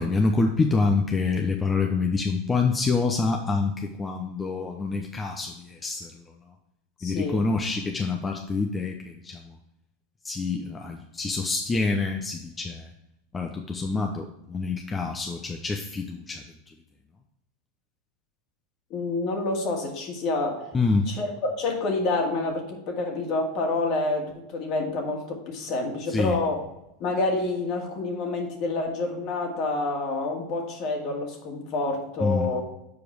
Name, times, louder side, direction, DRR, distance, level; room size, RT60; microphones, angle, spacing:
voice 1, 0.0-6.3 7.0-9.5 10.2-12.9 13.3-16.4 20.7-21.1 26.1-26.4 32.2-32.5, left 4 dB, 20° left, 3 dB, 0.8 m, -26 dB
voice 2, 7.0-7.5 18.9-20.7 21.1-26.7 27.0-32.6, left 2 dB, 50° left, 2 dB, 2.1 m, -28 dB
7.2 x 4.8 x 4.6 m, 0.84 s
hypercardioid pair, 95°, 0 cm